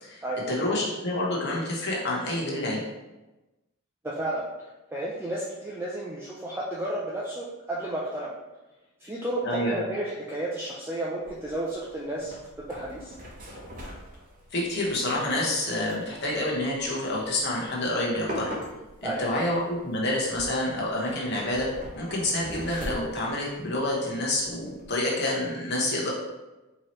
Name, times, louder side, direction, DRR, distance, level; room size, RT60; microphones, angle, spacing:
voice 1, 0.5-2.8 9.4-9.8 14.5-18.6 19.0-21.7 22.0-26.1, left 1 dB, 50° left, -3 dB, 1.0 m, -28 dB
voice 2, 4.0-4.4 4.9-8.3 9.0-13.1 19.0-19.2, right 1 dB, 10° right, -6 dB, 0.4 m, -32 dB
sound 1, 11.2-24.9, equal, 40° right, 0.8 m, -43 dB
4.6 x 2.9 x 3.0 m, 1.1 s
head